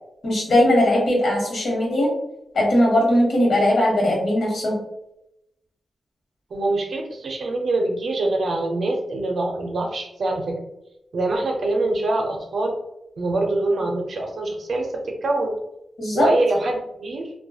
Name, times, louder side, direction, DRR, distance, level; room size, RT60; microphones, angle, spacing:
voice 1, 0.2-2.1 2.5-4.8 16.0-16.3, left 1 dB, 65° left, -2 dB, 1.0 m, -19 dB
voice 2, 6.5-10.6 11.1-12.8 13.2-15.5 16.1-17.3, right 2 dB, 60° right, 2 dB, 0.5 m, -24 dB
2.6 x 2.2 x 2.3 m, 0.84 s
wide cardioid pair, 135°, 0 cm